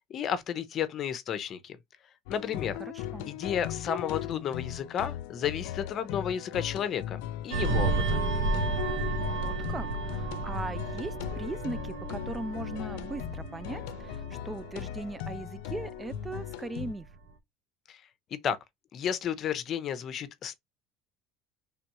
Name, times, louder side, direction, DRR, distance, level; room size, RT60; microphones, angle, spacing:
voice 1, 0.1-1.8 2.3-2.8 3.3-8.2 17.9-18.0 18.4-18.6 18.9-20.5, left 8 dB, 35° left, 0.8 m, -32 dB
sound 1, 2.3-16.9, left 12 dB, 80° left, 0.4 m, -38 dB
sound 2, 7.5-16.5 16.9-17.1, right 3 dB, 90° right, 1.2 m, -32 dB
voice 2, 9.3-17.1, right 2 dB, 15° right, 0.4 m, -39 dB
5.0 x 3.5 x 3.0 m
cardioid pair, 145°, 0 cm